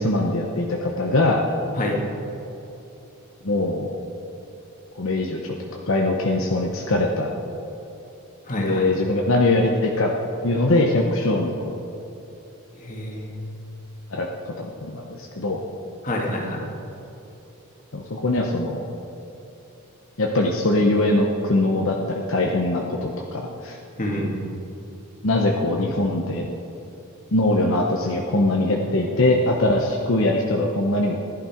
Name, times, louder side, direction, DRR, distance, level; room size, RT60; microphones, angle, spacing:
voice 1, 0.0-1.4 3.4-4.0 5.0-5.6 5.9-7.3 8.5-10.1 10.4-11.8 14.1-15.6 17.9-18.9 20.2-23.8 25.2-26.5 27.3-31.2, left 2 dB, 65° left, 0 dB, 1.0 m, -22 dB
voice 2, 8.5-8.9 12.8-13.3 16.0-16.6 24.0-24.3, left 1 dB, 35° left, -1 dB, 2.1 m, -27 dB
15.5 x 11.0 x 4.5 m, 3.0 s
head